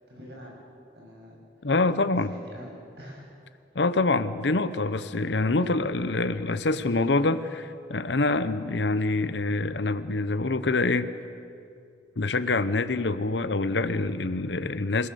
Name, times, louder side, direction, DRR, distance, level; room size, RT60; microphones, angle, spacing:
voice 1, 0.1-0.6 1.0-1.4 2.0-3.3, equal, 65° right, -1 dB, 6.9 m, -46 dB
voice 2, 1.6-2.3 3.7-11.1 12.2-15.1, left 3 dB, 75° left, 12 dB, 0.9 m, -25 dB
28.0 x 18.0 x 7.0 m, 2.5 s
head